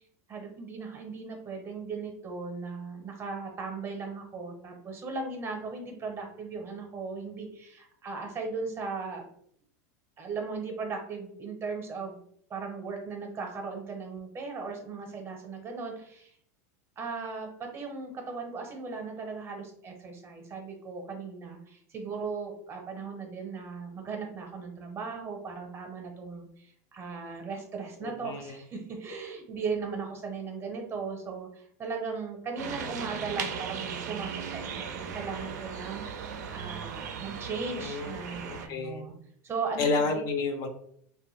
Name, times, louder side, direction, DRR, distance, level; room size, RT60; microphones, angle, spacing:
voice 1, 0.3-9.2 10.2-12.2 12.5-16.3 17.0-39.1 39.4-40.2, right 4 dB, 30° right, 3 dB, 0.7 m, -37 dB
voice 2, 28.0-28.6 37.7-39.1 39.8-40.7, left 4 dB, 45° left, 6 dB, 0.5 m, -31 dB
sound 1, 32.6-38.7, right 7 dB, 85° right, 0.4 m, -37 dB
2.5 x 2.2 x 3.1 m, 0.66 s
supercardioid pair, 115°, 9 cm